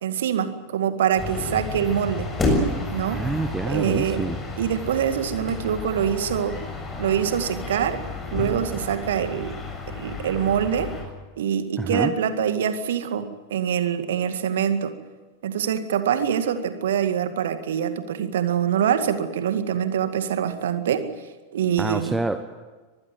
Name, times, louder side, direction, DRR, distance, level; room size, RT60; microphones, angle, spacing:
voice 1, 0.0-2.3 2.9-3.3 3.7-4.2 4.6-6.6 7.0-8.0 8.3-9.6 9.9-11.0 11.4-14.9 15.4-21.1 21.5-22.1, right 9 dB, 60° right, 10 dB, 2.1 m, -24 dB
sound 1, 1.2-11.0, left 2 dB, 15° left, 7.2 m, -30 dB
voice 2, 3.1-4.4 11.8-12.1 21.8-22.5, right 2 dB, 10° right, 9 dB, 1.2 m, -27 dB
24.5 x 20.0 x 7.7 m, 1.3 s
figure-of-eight pair, 90°, 0 cm